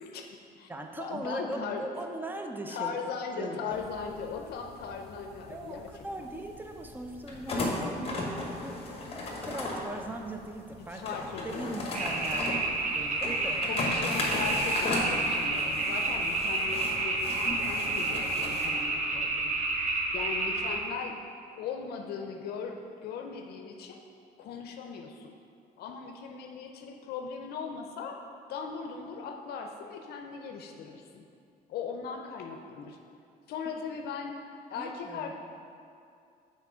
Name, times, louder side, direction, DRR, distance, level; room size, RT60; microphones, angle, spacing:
voice 1, 0.0-0.7 1.0-1.9 2.7-5.9 10.9-11.7 12.4-12.6 13.6-19.6 20.1-21.2 21.6-24.0 24.4-25.4 25.8-28.2 28.5-31.2 31.7-33.0 33.5-34.4 34.7-35.3, left 6 dB, 70° left, 3 dB, 0.5 m, -38 dB
voice 2, 0.7-3.0 3.3-3.8 5.5-9.1 9.4-11.2 11.4-13.7 34.7-35.3, right 1 dB, 10° right, 4 dB, 0.5 m, -40 dB
sound 1, 3.7-18.7, left 2 dB, 35° left, 1.2 m, -36 dB
sound 2, 11.9-20.8, right 2 dB, 45° right, 0.9 m, -30 dB
5.9 x 4.4 x 4.9 m, 2.4 s
cardioid pair, 110°, 17 cm